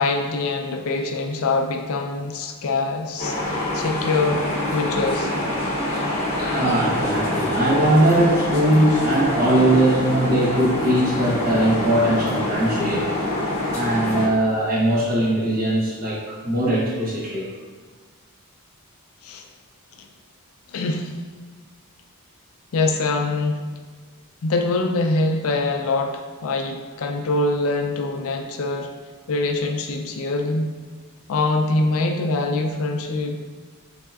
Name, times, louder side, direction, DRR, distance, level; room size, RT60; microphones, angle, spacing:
voice 1, 0.0-4.5 4.7-5.3 12.8-13.0 19.2-19.4 20.7-21.1 22.7-23.7 24.4-28.9 29.3-30.7 31.3-33.4, left 2 dB, 65° left, 4 dB, 0.4 m, -24 dB
sound 1, 3.2-14.3, left 1 dB, 30° left, 0.8 m, -25 dB
voice 2, 6.4-13.1 13.7-17.5, right 1 dB, 40° right, -5 dB, 0.8 m, -20 dB
4.1 x 3.5 x 2.3 m, 1.5 s
head